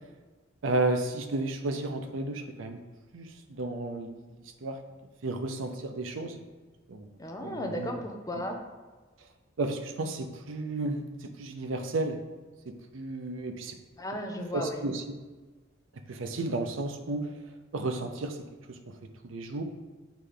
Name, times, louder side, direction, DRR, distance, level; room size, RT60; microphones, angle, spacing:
voice 1, 0.6-2.8 3.1-4.8 5.2-6.4 6.9-7.1 7.4-8.0 9.6-12.2 12.7-13.8 14.5-15.0 16.1-17.3 17.7-18.4 18.7-19.0 19.2-19.6, right 2 dB, 85° right, 6 dB, 0.6 m, -33 dB
voice 2, 7.2-8.6 14.0-14.8, left 1 dB, 20° left, 3 dB, 0.6 m, -35 dB
8.1 x 3.3 x 3.8 m, 1.3 s
head